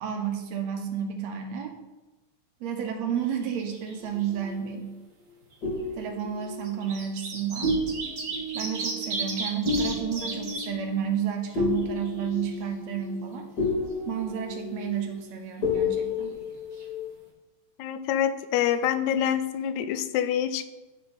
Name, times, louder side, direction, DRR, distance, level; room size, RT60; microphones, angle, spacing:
voice 1, 0.0-1.8 2.6-4.9 6.0-7.7 8.5-13.5 14.1-16.4, right 8 dB, 75° right, 4 dB, 1.9 m, -31 dB
sound 1, 3.2-3.9 4.2-4.3 5.4-5.5 6.4-10.7 11.1-11.2 11.5-12.5 16.4-16.5 16.7-16.8, right 3 dB, 50° right, 1.1 m, -34 dB
sound 2, 4.0-5.0 5.6-7.3 7.6-17.1, left 3 dB, 55° left, 1.2 m, -32 dB
voice 2, 17.8-20.7, left 9 dB, 85° left, 11 dB, 1.9 m, -26 dB
11.0 x 3.8 x 4.0 m, 1.1 s
omnidirectional pair, 3.3 m